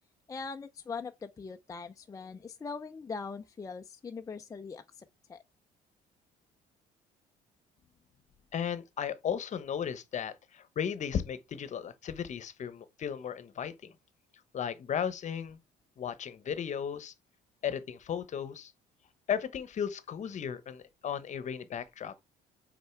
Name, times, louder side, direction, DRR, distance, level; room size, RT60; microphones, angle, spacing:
voice 1, 0.3-5.4, left 5 dB, 20° left, 0.4 m, -41 dB
voice 2, 8.5-13.9 14.5-15.6 16.0-17.1 17.6-18.7 19.3-22.1, left 8 dB, 45° left, 0.9 m, -35 dB
5.5 x 4.4 x 4.5 m
cardioid pair, 110°, 17 cm